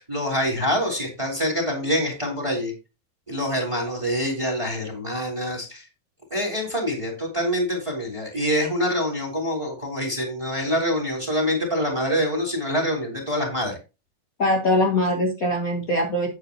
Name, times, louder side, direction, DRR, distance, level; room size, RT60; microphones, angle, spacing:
voice 1, 0.0-2.7 3.3-5.8 6.3-13.8, equal, 10° right, 2 dB, 3.0 m, -25 dB
voice 2, 14.4-16.3, left 1 dB, 50° left, -1 dB, 1.0 m, -22 dB
11.0 x 8.8 x 2.9 m, 0.29 s
omnidirectional pair, 4.9 m